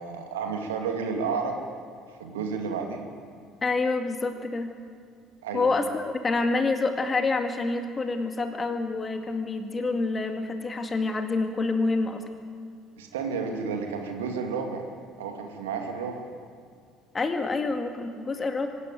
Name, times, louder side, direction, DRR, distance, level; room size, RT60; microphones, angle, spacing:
voice 1, 0.0-1.6 2.2-3.0 5.4-5.7 13.0-14.9 15.2-16.2, right 5 dB, 70° right, 3 dB, 2.4 m, -31 dB
voice 2, 3.6-4.7 5.5-12.2 17.1-18.7, left 3 dB, 25° left, 6 dB, 2.1 m, -27 dB
24.5 x 11.5 x 9.4 m, 2.2 s
figure-of-eight pair, 55°, 0 cm